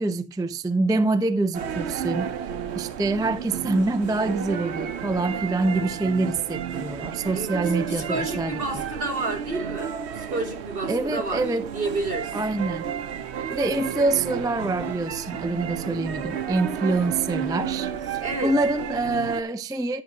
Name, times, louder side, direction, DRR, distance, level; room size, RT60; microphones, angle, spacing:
voice 1, 0.0-2.3 2.7-8.6 10.9-11.7 12.3-12.8 13.5-20.0, right 2 dB, 5° right, 0.4 m, -26 dB
sound 1, 1.5-19.4, right 8 dB, 85° right, 1.0 m, -32 dB
voice 2, 7.3-11.5 11.7-12.4 18.2-18.5, right 2 dB, 55° right, 3.0 m, -30 dB
10.5 x 7.5 x 2.8 m
omnidirectional pair, 1.1 m